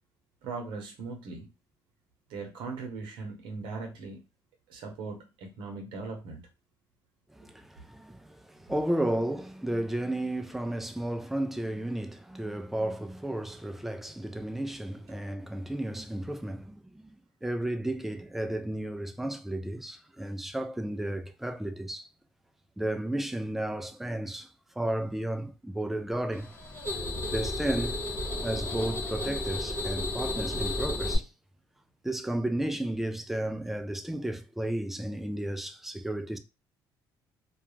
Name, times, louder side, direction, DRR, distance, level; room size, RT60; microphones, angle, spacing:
voice 1, 0.4-1.5 2.3-4.2 4.7-6.4, right 4 dB, 80° right, 0.8 m, -39 dB
voice 2, 7.3-22.1 22.8-26.5 27.3-28.0 28.4-31.3 32.0-36.4, right 1 dB, 5° right, 0.3 m, -33 dB
sound 1, 26.3-31.2, left 1 dB, 30° left, 1.1 m, -33 dB
2.3 x 2.2 x 3.1 m
cardioid pair, 110°, 8 cm